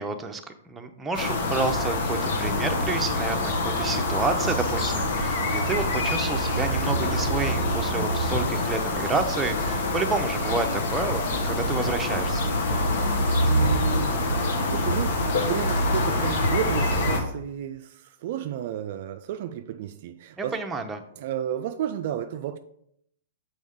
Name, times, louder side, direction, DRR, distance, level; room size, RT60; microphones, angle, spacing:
voice 1, 0.0-12.5 20.4-21.0, right 3 dB, 10° right, 0.7 m, -30 dB
sound 1, 1.1-17.2, left 1 dB, 65° left, 1.2 m, -25 dB
voice 2, 12.9-14.3 14.7-20.6 21.2-22.6, right 10 dB, 55° right, 0.3 m, -32 dB
6.2 x 4.6 x 3.6 m
hypercardioid pair, 120°, 0 cm